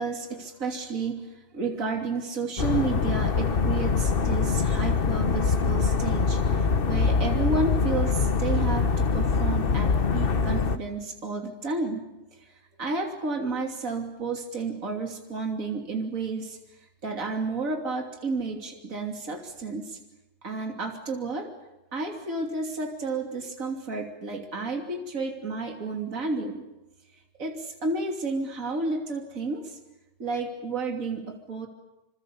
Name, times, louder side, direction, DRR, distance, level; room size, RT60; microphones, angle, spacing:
voice 1, 0.0-20.0 20.4-21.5 21.9-26.6 27.4-29.8 30.2-31.7, right 3 dB, 55° right, 2 dB, 3.4 m, -31 dB
sound 1, 2.6-10.8, left 5 dB, 40° left, 1.2 m, -24 dB
28.0 x 26.5 x 7.1 m, 0.99 s
omnidirectional pair, 1.7 m